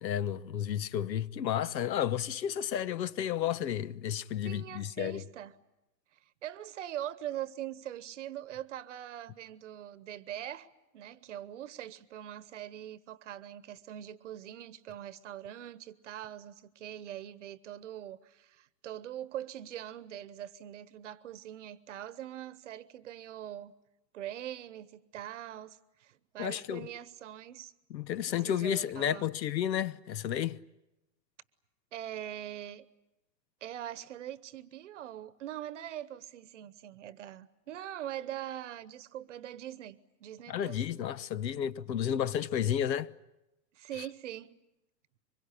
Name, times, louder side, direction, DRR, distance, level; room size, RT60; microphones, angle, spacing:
voice 1, 0.0-5.2 26.4-26.9 27.9-30.6 40.5-43.1, left 10 dB, 85° left, 1.1 m, -32 dB
voice 2, 4.4-5.5 6.4-10.7 10.9-23.7 24.1-27.7 28.3-29.3 31.9-32.9 33.6-40.8 43.7-44.6, right 11 dB, 45° right, 1.0 m, -42 dB
24.5 x 22.0 x 9.9 m
hypercardioid pair, 170°, 50 cm